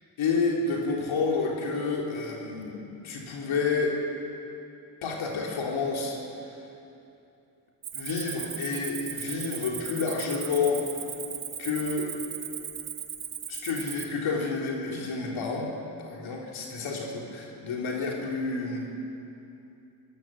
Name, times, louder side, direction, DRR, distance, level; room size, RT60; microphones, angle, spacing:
voice 1, 0.2-3.9 5.0-6.2 7.9-10.8 11.6-12.1 13.5-15.7 16.0-18.8, left 4 dB, 75° left, -1 dB, 3.5 m, -29 dB
Cricket, 7.8-14.1, right 9 dB, 60° right, 1.9 m, -37 dB
24.5 x 14.5 x 7.6 m, 2.8 s
supercardioid pair, 50°, 48 cm